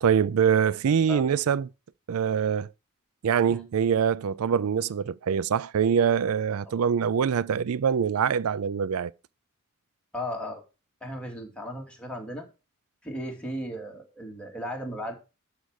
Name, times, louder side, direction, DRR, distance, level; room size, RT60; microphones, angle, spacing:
voice 1, 0.0-1.7 2.1-2.7 3.2-9.1, right 7 dB, 80° right, 0.4 m, -24 dB
voice 2, 10.1-10.6 11.0-12.5 13.0-15.1, equal, 5° left, 2.6 m, -36 dB
11.5 x 4.8 x 6.5 m
head